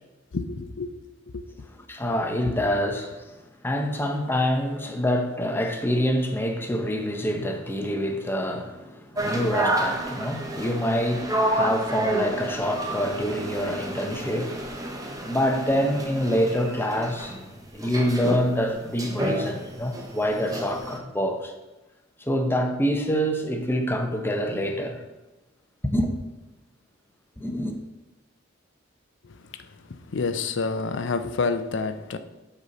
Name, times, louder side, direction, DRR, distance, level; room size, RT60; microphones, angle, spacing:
voice 1, 0.3-0.9 1.3-1.4 2.5-2.6 29.2-32.2, left 4 dB, 65° left, 0.5 m, -29 dB
voice 2, 1.9-3.4 3.6-14.6 15.2-17.4 17.7-21.5 22.2-25.0 25.9-26.1 27.4-27.8, equal, 10° left, 0.7 m, -26 dB
sound 1, 9.2-21.0, right 1 dB, 20° right, 0.9 m, -30 dB
8.1 x 4.2 x 5.3 m
head